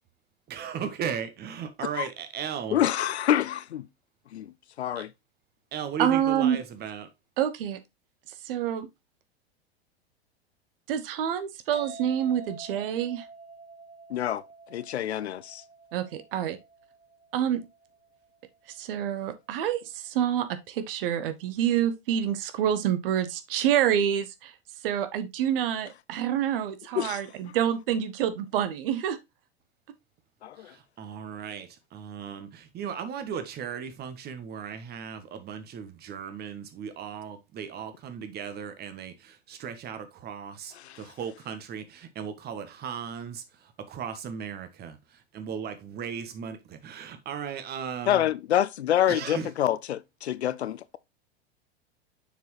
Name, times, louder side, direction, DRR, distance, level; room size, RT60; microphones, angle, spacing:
voice 1, 0.5-2.8 5.0-5.1 5.7-7.1 30.7-43.4 43.9-45.0 45.3-48.2 49.1-49.5, right 7 dB, 30° right, 1.2 m, -36 dB
voice 2, 2.7-3.9 4.3-4.5 4.8-5.1 14.1-14.4 14.7-15.6 26.9-27.5 30.4-30.7 40.7-41.1 48.1-51.0, left 11 dB, 80° left, 0.6 m, -27 dB
voice 3, 6.0-6.6 7.4-7.8 8.4-8.9 10.9-13.2 15.9-16.6 17.3-17.7 18.8-24.5 24.8-29.2, right 10 dB, 55° right, 0.9 m, -27 dB
sound 1, 11.7-19.2, right 3 dB, 80° right, 3.9 m, -48 dB
6.8 x 4.6 x 3.2 m
figure-of-eight pair, 95°, 33 cm